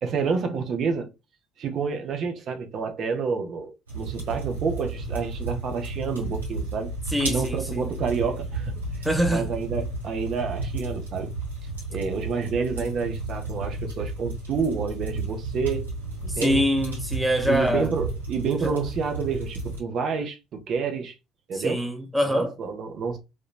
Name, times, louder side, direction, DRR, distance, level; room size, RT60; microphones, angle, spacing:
voice 1, 0.0-1.1 1.6-6.9 7.3-9.0 9.3-11.3 11.9-15.9 16.2-16.6 17.5-21.1 21.5-21.9 22.2-23.2, right 5 dB, 50° right, 0.6 m, -29 dB
sound 1, 3.9-19.8, right 2 dB, 85° right, 1.0 m, -32 dB
voice 2, 7.1-7.9 9.0-9.5 16.4-17.9 18.6-18.7 21.5-22.5, equal, 5° right, 0.6 m, -24 dB
2.8 x 2.1 x 2.4 m
figure-of-eight pair, 55°, 0 cm